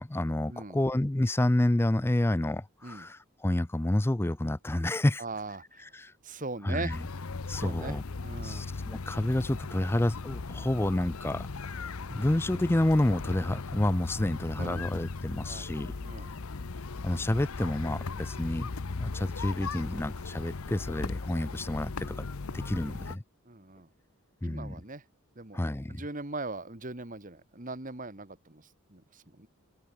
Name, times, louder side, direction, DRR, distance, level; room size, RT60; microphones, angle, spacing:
voice 1, 0.0-5.2 5.8-6.1 6.6-7.1 7.5-8.0 8.4-11.8 12.1-15.9 17.0-18.7 19.0-22.3 22.5-23.2 24.4-24.8 25.5-26.0, left 1 dB, 10° left, 0.4 m, -29 dB
voice 2, 5.2-5.8 6.2-7.0 7.6-8.7 14.6-14.9 15.4-15.7 16.0-16.3 22.5-22.7 23.5-23.9 24.4-25.0 25.4-25.6 25.9-28.6 28.9-29.5, right 2 dB, 35° right, 2.0 m, -40 dB
sound 1, 6.9-23.2, left 4 dB, 80° left, 0.8 m, -38 dB
open air
head